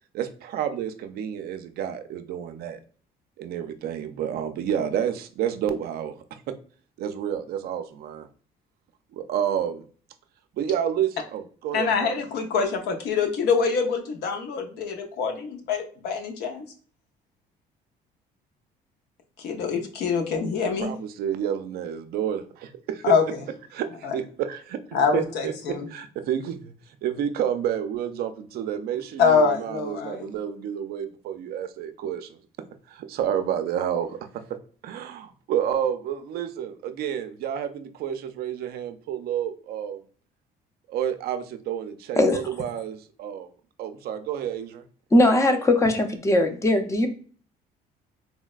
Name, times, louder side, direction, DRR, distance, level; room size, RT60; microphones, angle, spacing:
voice 1, 0.1-2.8 3.4-6.5 7.0-8.3 9.1-9.8 10.6-12.2 20.8-23.1 23.7-24.8 25.1-26.7 27.0-32.4 32.9-34.4 34.8-40.0 40.9-43.5 43.8-44.8, right 9 dB, 65° right, 10 dB, 0.4 m, -30 dB
voice 2, 11.7-16.7 19.4-20.9 23.0-23.2 24.0-24.1 24.9-25.9 29.2-30.3, left 5 dB, 75° left, 4 dB, 0.7 m, -24 dB
voice 3, 45.1-47.1, left 1 dB, 15° left, 6 dB, 0.5 m, -20 dB
4.0 x 2.1 x 2.3 m, 0.43 s
cardioid pair, 110°, 17 cm